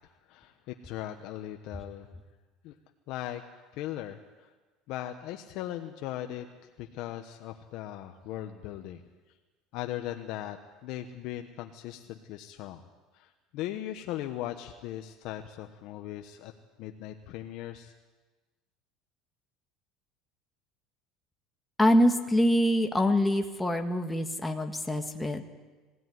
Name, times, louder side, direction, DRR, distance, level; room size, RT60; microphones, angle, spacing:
voice 1, 0.3-2.1 2.6-2.7 3.1-3.4 3.7-4.5 4.9-6.5 6.8-9.0 9.7-10.6 10.8-12.8 13.1-16.5 16.8-17.9, left 13 dB, 65° left, 5 dB, 1.3 m, -38 dB
voice 2, 21.8-25.4, equal, 5° left, 3 dB, 1.7 m, -25 dB
21.5 x 16.5 x 9.5 m, 1.3 s
cardioid pair, 130°, 0 cm